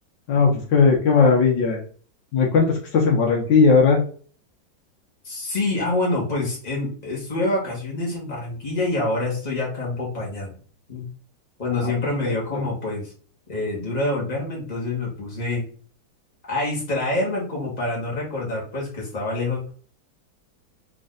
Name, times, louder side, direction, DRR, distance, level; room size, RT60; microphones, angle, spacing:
voice 1, 0.3-1.8 2.3-4.0 11.8-11.9 12.2-12.3, left 5 dB, 75° left, 1 dB, 1.6 m, -17 dB
voice 2, 5.2-10.6 10.9-11.0 11.6-13.1 13.5-15.6 16.5-19.7, left 2 dB, 20° left, -4 dB, 1.8 m, -26 dB
4.0 x 3.3 x 3.9 m, 0.43 s
omnidirectional pair, 2.1 m